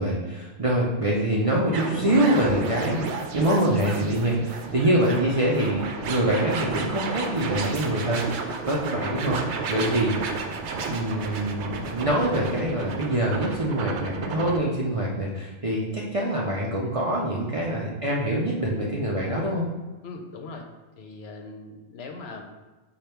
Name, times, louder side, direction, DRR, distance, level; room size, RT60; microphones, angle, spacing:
voice 1, 0.0-10.3 10.9-19.7, right 1 dB, 40° right, -4 dB, 0.5 m, -25 dB
sound 1, 1.7-14.6, right 4 dB, 75° right, 0.8 m, -32 dB
voice 2, 20.0-20.7 21.0-22.4, left 3 dB, 70° left, 3 dB, 0.8 m, -39 dB
5.1 x 2.4 x 4.3 m, 1.2 s
omnidirectional pair, 1.2 m